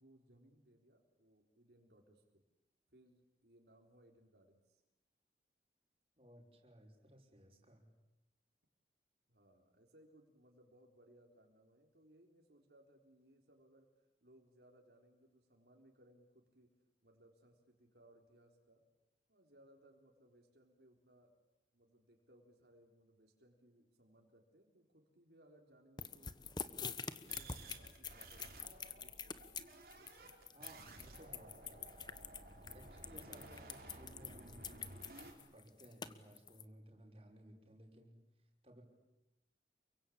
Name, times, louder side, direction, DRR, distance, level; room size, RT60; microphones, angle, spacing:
voice 1, 0.0-2.4 2.9-4.8 9.3-16.7 17.0-18.8 19.3-21.4 21.7-28.5 28.9-29.4, right 1 dB, 70° right, 1 dB, 3.9 m, -67 dB
voice 2, 6.2-7.8 30.5-31.9 32.7-34.7 35.5-38.1 38.6-38.8, equal, 35° right, 0 dB, 5.9 m, -59 dB
sound 1, 26.0-36.6, left 6 dB, 25° left, 1.1 m, -46 dB
sound 2, 27.3-35.3, right 2 dB, 55° right, 4.2 m, -55 dB
29.0 x 23.5 x 8.7 m, 0.93 s
head